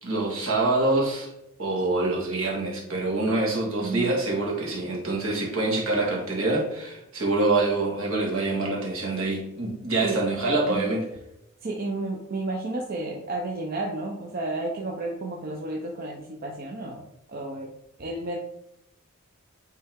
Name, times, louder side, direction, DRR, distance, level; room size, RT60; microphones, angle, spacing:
voice 1, 0.0-1.3 1.6-11.1, right 2 dB, 70° right, -3 dB, 1.9 m, -25 dB
voice 2, 11.6-17.0 17.3-17.7 18.0-18.4, right 2 dB, 45° right, -1 dB, 0.7 m, -32 dB
8.7 x 3.4 x 3.6 m, 0.83 s
head